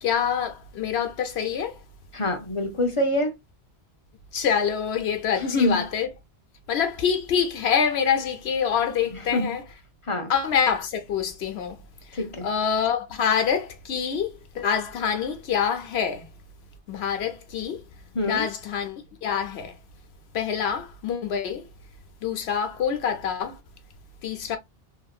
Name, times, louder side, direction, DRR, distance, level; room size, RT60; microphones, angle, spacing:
voice 1, 0.0-1.7 4.3-6.1 6.7-9.6 10.3-11.8 12.4-16.2 16.9-17.8 18.3-19.7 20.3-21.6 22.2-23.6 24.2-24.6, left 7 dB, 80° left, 1.0 m, -26 dB
voice 2, 2.1-3.3 5.3-5.9 9.1-9.6 10.1-10.3 12.2-12.5 18.1-18.5, left 1 dB, 35° left, 0.7 m, -25 dB
2.9 x 2.8 x 2.3 m
omnidirectional pair, 1.1 m